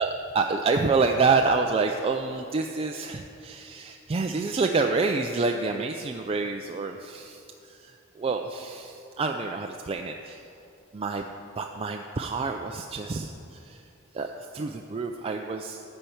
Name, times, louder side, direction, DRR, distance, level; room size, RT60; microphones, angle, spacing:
voice 1, 0.0-10.4 10.9-11.3 11.6-13.8 14.1-15.8, right 4 dB, 30° right, 3 dB, 0.4 m, -28 dB
13.5 x 4.5 x 8.4 m, 2.7 s
head